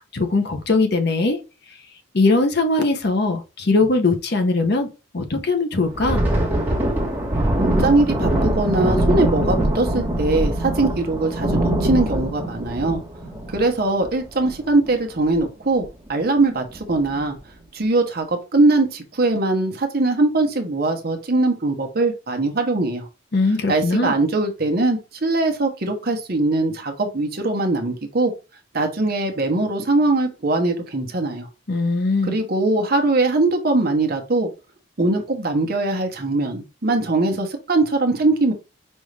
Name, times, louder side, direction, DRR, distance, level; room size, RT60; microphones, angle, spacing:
voice 1, 0.1-1.4 2.1-4.9 5.1-6.3 23.3-24.1 31.7-32.4, left 3 dB, 50° left, 0.7 m, -20 dB
Thunder, 5.8-14.9 15.2-15.4 15.8-16.1 16.7-17.2, right 1 dB, 10° right, 1.1 m, -23 dB
voice 2, 7.6-13.0 13.5-17.4 17.7-23.1 23.7-28.3 28.7-31.5 32.2-34.5 35.0-38.5, right 2 dB, 50° right, 0.9 m, -21 dB
5.3 x 2.5 x 3.2 m
head